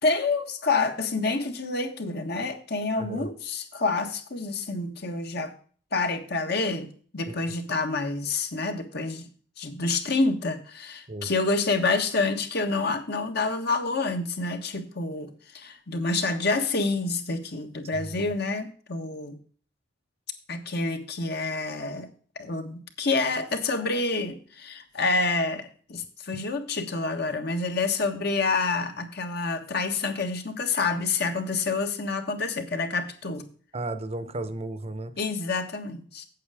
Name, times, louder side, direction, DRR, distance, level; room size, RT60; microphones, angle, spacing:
voice 1, 0.0-5.5 5.9-6.9 7.1-9.3 9.6-19.4 20.5-22.1 22.3-33.4 35.2-36.2, left 3 dB, 55° left, 6 dB, 1.5 m, -28 dB
voice 2, 3.0-3.3 7.3-7.4 11.1-11.3 17.9-18.2 33.7-35.2, right 2 dB, 35° right, 12 dB, 0.8 m, -34 dB
8.4 x 7.9 x 4.9 m, 0.43 s
head